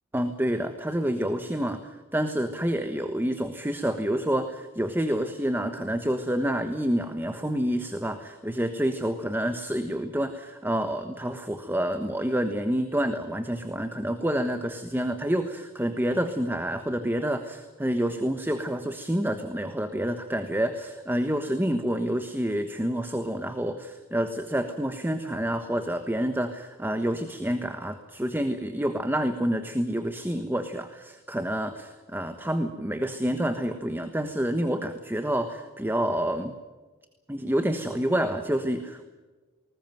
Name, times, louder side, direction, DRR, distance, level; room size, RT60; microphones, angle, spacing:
voice 1, 0.1-36.5 37.3-39.0, equal, 10° right, 8 dB, 1.2 m, -28 dB
20.0 x 19.5 x 9.2 m, 1.3 s
head